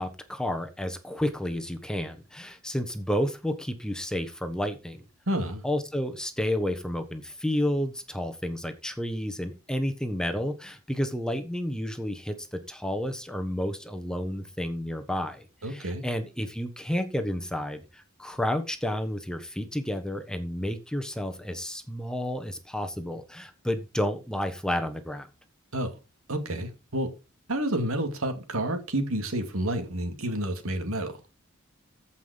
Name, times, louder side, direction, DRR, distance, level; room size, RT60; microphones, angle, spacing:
voice 1, 0.0-5.0 5.6-25.3, equal, 5° left, 1.2 m, -31 dB
voice 2, 5.3-5.6 15.6-16.0 25.7-25.9 26.3-27.1 27.5-31.1, right 1 dB, 75° right, 2.5 m, -29 dB
14.5 x 5.7 x 5.2 m
head